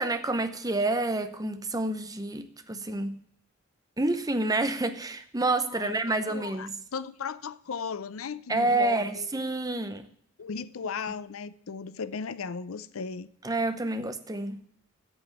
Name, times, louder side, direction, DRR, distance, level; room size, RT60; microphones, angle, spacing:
voice 1, 0.0-3.2 4.0-6.7 8.5-10.1 13.4-14.6, right 2 dB, 20° right, 0.8 m, -28 dB
voice 2, 5.6-6.0 6.3-9.3 10.4-13.3, left 5 dB, 85° left, 0.5 m, -36 dB
8.5 x 7.9 x 7.9 m
head